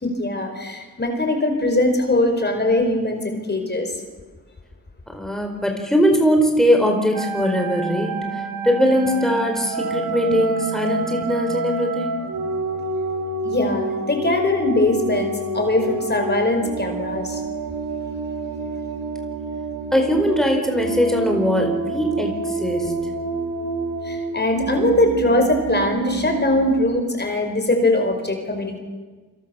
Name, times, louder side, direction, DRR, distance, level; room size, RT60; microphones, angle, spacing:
voice 1, 0.0-3.9 13.4-17.4 24.0-28.8, left 2 dB, 30° left, 5 dB, 4.8 m, -21 dB
voice 2, 5.1-12.2 19.9-22.9, equal, ahead, 2 dB, 4.5 m, -20 dB
sound 1, 7.1-26.7, right 3 dB, 90° right, 2.3 m, -28 dB
28.5 x 26.0 x 7.0 m, 1.3 s
wide cardioid pair, 100°, 32 cm